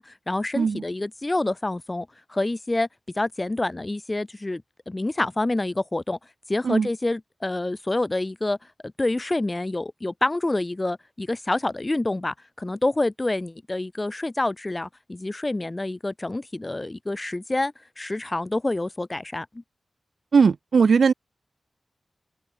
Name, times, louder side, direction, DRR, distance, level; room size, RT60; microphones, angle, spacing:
voice 1, 0.0-2.9 3.2-6.2 6.5-8.6 9.0-19.5, left 2 dB, 30° left, 7.9 m, -27 dB
voice 2, 20.3-21.1, right 5 dB, 85° right, 3.3 m, -19 dB
wide cardioid pair, 65°, 0 cm